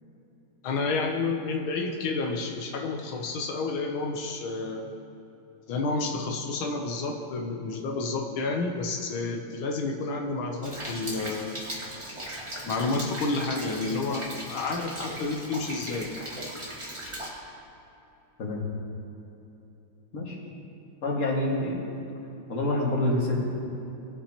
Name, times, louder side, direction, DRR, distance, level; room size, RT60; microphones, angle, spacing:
voice 1, 0.6-4.9 5.7-11.6 12.7-16.1, left 3 dB, 85° left, 1 dB, 1.6 m, -30 dB
Rain, 10.6-17.3, right 1 dB, 20° right, 1.1 m, -38 dB
voice 2, 21.0-21.8 22.5-23.4, left 1 dB, 40° left, -3 dB, 2.0 m, -27 dB
18.5 x 7.2 x 2.9 m, 3.0 s
omnidirectional pair, 2.2 m